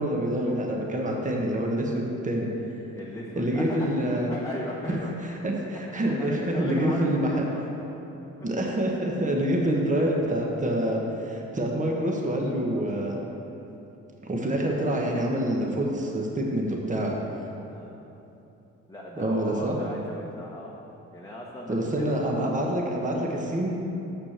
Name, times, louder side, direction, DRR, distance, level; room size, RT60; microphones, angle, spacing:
voice 1, 0.0-2.5 3.4-4.3 5.2-7.4 8.4-13.2 14.2-17.2 19.2-19.8 21.7-23.7, right 1 dB, 25° right, -1 dB, 1.3 m, -26 dB
voice 2, 2.9-5.3 5.8-8.0 9.3-9.4 9.7-10.2 13.5-13.8 17.6-17.9 18.9-20.8 21.1-22.2, equal, 10° left, -4 dB, 1.1 m, -38 dB
6.7 x 6.0 x 7.3 m, 2.9 s
cardioid pair, 90°, 30 cm